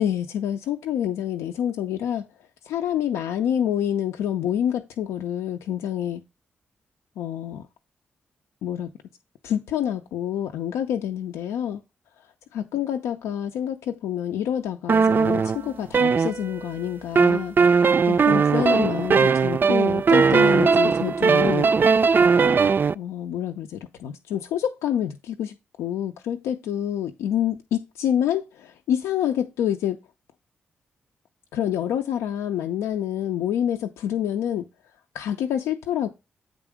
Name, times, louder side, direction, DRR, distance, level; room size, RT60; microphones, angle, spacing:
voice 1, 0.0-2.2 2.7-6.2 7.2-7.6 8.6-8.9 9.4-11.8 12.5-17.5 18.0-21.7 22.9-30.0 31.5-34.6 35.1-36.1, left 10 dB, 90° left, 0.5 m, -27 dB
sound 1, 14.9-16.7 17.2-22.9, right 5 dB, 45° right, 0.4 m, -19 dB
8.2 x 3.6 x 5.0 m
supercardioid pair, 45°, 5 cm